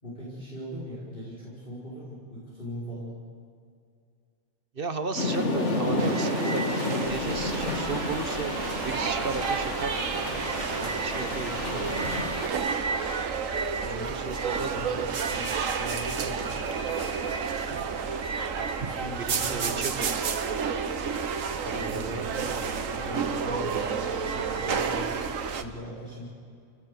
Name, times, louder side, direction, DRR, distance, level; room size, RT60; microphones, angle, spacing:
voice 1, 0.0-3.2 13.8-14.1 14.7-16.5 18.6-19.8 21.8-26.3, equal, 40° left, -8 dB, 5.3 m, -40 dB
voice 2, 4.7-10.0 10.8-12.2 14.1-15.0 16.5-16.6 17.7-18.1 18.6-20.3 21.6-22.3, right 4 dB, 45° right, 8 dB, 1.3 m, -35 dB
sound 1, 5.2-12.5, left 2 dB, 60° left, 2.5 m, -31 dB
sound 2, 6.0-25.6, right 6 dB, 75° right, 1.5 m, -31 dB
sound 3, 7.0-25.6, right 3 dB, 10° left, 4.5 m, -43 dB
29.5 x 18.0 x 6.9 m, 2.3 s
omnidirectional pair, 1.4 m